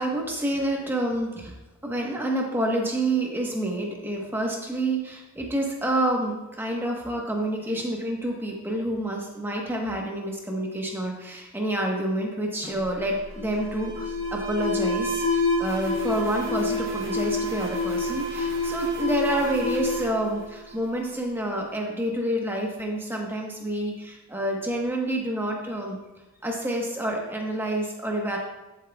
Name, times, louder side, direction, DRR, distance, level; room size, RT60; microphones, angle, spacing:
voice 1, 0.0-1.5 1.8-26.0 26.4-28.4, right 1 dB, 10° right, 0 dB, 1.1 m, -28 dB
Alarm, 12.6-21.2, left 2 dB, 60° right, 2.9 m, -28 dB
11.0 x 7.9 x 2.3 m, 1.1 s
head